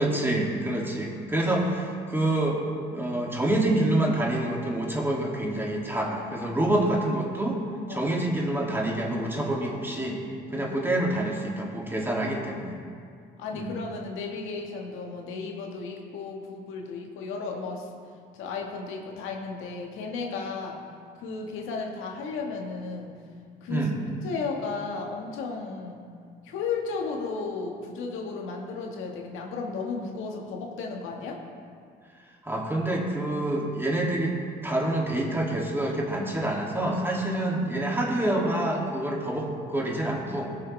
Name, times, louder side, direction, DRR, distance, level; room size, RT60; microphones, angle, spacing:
voice 1, 0.0-2.6 2.9-7.6 7.9-10.2 10.5-12.8 13.5-13.8 23.7-24.0 32.4-34.4 34.6-40.5, right 1 dB, 10° right, -2 dB, 2.2 m, -27 dB
voice 2, 13.4-17.9 18.3-20.8 21.1-23.1 23.6-23.9 24.2-26.0 26.4-31.4, left 4 dB, 75° left, 1 dB, 1.4 m, -34 dB
16.0 x 6.7 x 3.2 m, 2.2 s
supercardioid pair, 75°, 21 cm